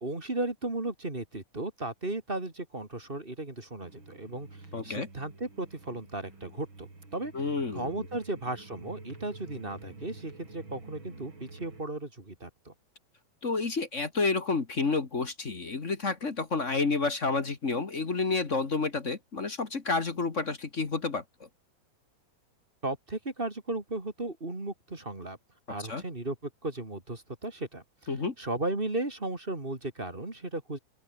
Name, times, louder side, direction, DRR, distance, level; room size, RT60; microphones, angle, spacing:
voice 1, 0.0-7.3 7.7-12.7 22.8-25.4 25.7-30.8, right 2 dB, 20° right, 2.8 m, -35 dB
sound 1, 3.8-11.8, right 3 dB, 40° right, 6.8 m, -49 dB
voice 2, 4.7-5.1 7.3-8.0 13.4-21.5 25.9-26.0 28.1-28.3, left 4 dB, 30° left, 1.6 m, -30 dB
open air
omnidirectional pair, 3.3 m